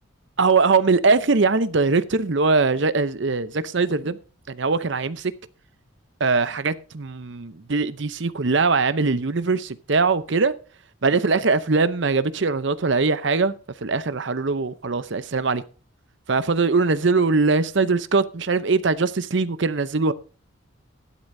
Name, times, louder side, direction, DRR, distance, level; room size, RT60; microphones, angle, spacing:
voice 1, 0.4-4.2 4.5-5.2 6.2-10.5 11.0-13.5 13.8-15.6 16.3-20.1, right 4 dB, 60° right, 0.7 m, -21 dB
14.0 x 11.5 x 2.7 m
head